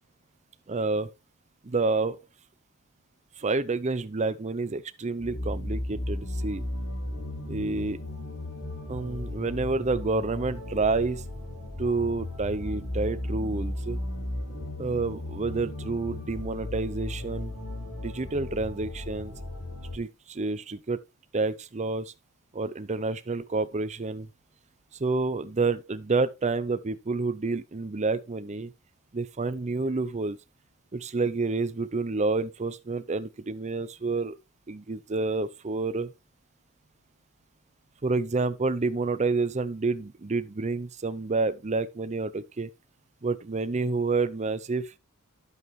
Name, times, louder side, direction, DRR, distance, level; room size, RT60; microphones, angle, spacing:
voice 1, 0.7-1.1 1.6-2.2 3.4-6.6 7.5-8.0 8.9-11.2 11.8-14.0 14.8-17.5 18.0-19.3 19.9-21.0 21.3-22.1 22.5-24.3 25.0-28.7 29.1-30.4 30.9-34.4 34.7-36.1 38.0-42.7 43.2-44.9, right 3 dB, 30° right, 0.6 m, -29 dB
sound 1, 5.2-20.0, left 1 dB, 85° left, 4.3 m, -35 dB
11.0 x 8.0 x 3.2 m
head